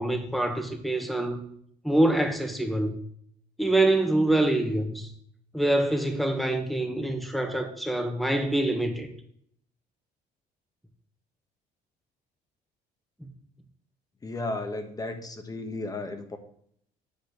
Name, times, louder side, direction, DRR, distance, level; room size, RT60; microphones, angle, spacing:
voice 1, 0.0-1.4 1.8-3.0 3.6-5.1 5.5-9.1, right 1 dB, ahead, 1.3 m, -25 dB
voice 2, 14.2-16.4, left 2 dB, 20° left, 1.3 m, -34 dB
8.3 x 4.3 x 6.6 m
cardioid pair, 110°, 17 cm